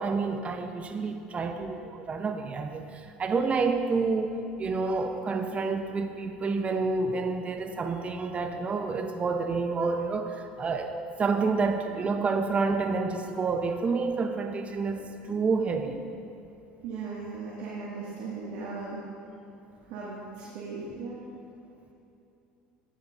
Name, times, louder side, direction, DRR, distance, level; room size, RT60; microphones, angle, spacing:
voice 1, 0.0-4.3 4.6-10.9 11.2-16.0, right 4 dB, 30° right, 5 dB, 0.8 m, -29 dB
voice 2, 16.8-19.0 19.8-21.2, right 4 dB, 65° right, -7 dB, 2.0 m, -37 dB
16.0 x 10.5 x 2.6 m, 2.8 s
hypercardioid pair, 80°, 4 cm